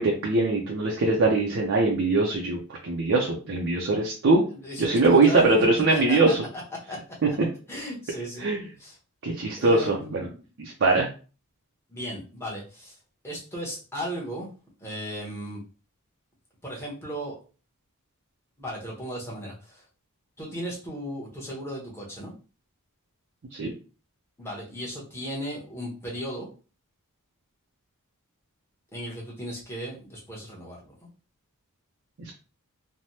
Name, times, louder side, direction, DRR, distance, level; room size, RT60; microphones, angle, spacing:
voice 1, 0.0-4.4 4.8-6.4 8.4-8.6 9.2-10.2 10.6-11.1 23.5-23.7, right 3 dB, 55° right, -1 dB, 0.5 m, -22 dB
voice 2, 4.5-5.4 5.9-7.0 7.7-8.5 8.8-9.0 9.6-10.4 11.9-13.0 13.2-14.5 14.8-15.6 16.6-17.4 18.6-19.8 20.4-22.3 24.4-26.5 28.9-31.0, equal, 10° left, -4 dB, 1.0 m, -36 dB
3.3 x 2.1 x 2.7 m, 0.36 s
head